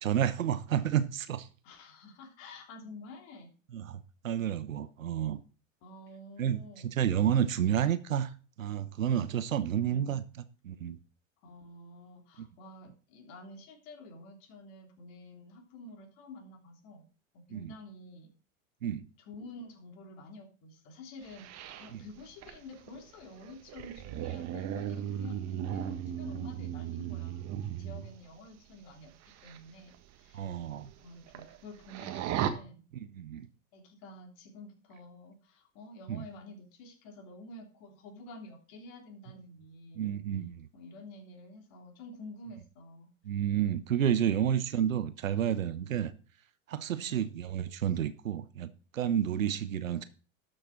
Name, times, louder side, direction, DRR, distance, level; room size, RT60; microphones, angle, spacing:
voice 1, 0.0-1.5 3.7-5.4 6.4-8.3 8.6-10.2 10.6-11.0 12.4-12.5 17.5-17.7 18.8-19.0 21.9-22.0 30.3-30.9 32.9-33.5 36.1-36.2 39.9-40.7 43.2-46.1 46.7-50.0, right 9 dB, 80° right, 1.1 m, -30 dB
voice 2, 1.6-3.5 5.8-6.9 9.7-10.2 11.4-17.1 17.3-18.3 19.2-30.5 31.0-32.8 33.7-40.1 40.7-43.1 46.9-47.2 49.4-49.5, left 2 dB, 50° left, 3.2 m, -49 dB
sound 1, 21.3-28.1 29.2-29.6 29.9-30.0 30.6-30.7 30.9-31.6 31.8-32.5, right 10 dB, 40° right, 1.5 m, -36 dB
12.0 x 6.7 x 4.7 m
hypercardioid pair, 90°, 40 cm